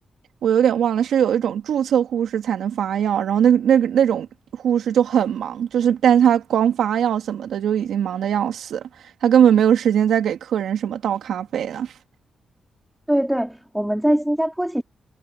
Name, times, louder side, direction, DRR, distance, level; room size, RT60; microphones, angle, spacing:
voice 1, 0.4-4.3 4.5-8.8 9.2-11.9, right 9 dB, 80° right, 2.4 m, -20 dB
voice 2, 13.1-14.8, equal, 5° right, 3.5 m, -22 dB
supercardioid pair, 55°, 0 cm